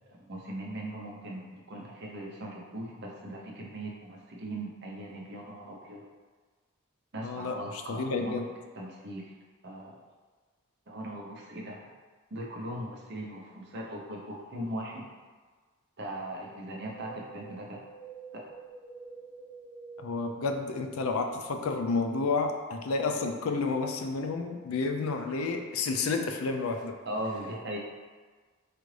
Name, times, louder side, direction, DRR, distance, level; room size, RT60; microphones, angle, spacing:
voice 1, 0.0-6.0 7.1-8.4 8.7-9.3 9.6-10.0 10.9-11.9 12.3-15.1 16.0-17.8 18.3-18.4 27.1-27.8, right 1 dB, 55° right, -2 dB, 0.7 m, -39 dB
voice 2, 7.2-8.5 20.0-26.9, left 4 dB, 80° left, 5 dB, 0.4 m, -30 dB
Wind, 16.7-21.0 21.3-21.4, right 5 dB, 20° left, 0.7 m, -48 dB
4.8 x 2.5 x 3.2 m, 1.4 s
head